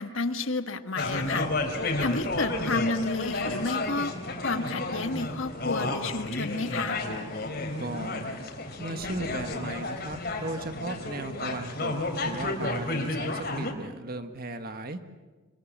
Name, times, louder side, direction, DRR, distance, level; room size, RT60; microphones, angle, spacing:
voice 1, 0.0-1.5 2.0-4.1 4.4-7.0, left 3 dB, 80° left, 9 dB, 1.5 m, -31 dB
sound 1, 1.0-13.7, left 2 dB, 50° left, 3.8 m, -32 dB
voice 2, 7.8-8.2 8.8-11.9 12.2-15.0, right 2 dB, 50° right, 8 dB, 1.6 m, -36 dB
27.0 x 24.0 x 7.3 m, 1.3 s
head